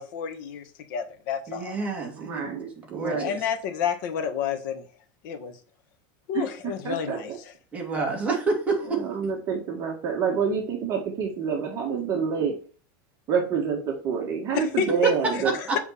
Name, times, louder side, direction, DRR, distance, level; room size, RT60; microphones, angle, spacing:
voice 1, 0.0-1.7 3.1-4.8 5.2-5.6 6.3-7.3 14.5-15.4, left 7 dB, 60° left, 1.8 m, -30 dB
voice 2, 1.5-2.5 2.9-3.4 7.7-9.0 15.0-15.1 15.4-15.8, right 3 dB, 10° right, 2.4 m, -28 dB
voice 3, 2.2-3.4 6.3-7.4 8.9-12.5 13.3-15.5, right 6 dB, 30° right, 2.1 m, -28 dB
7.7 x 7.0 x 4.3 m
supercardioid pair, 160°, 11 cm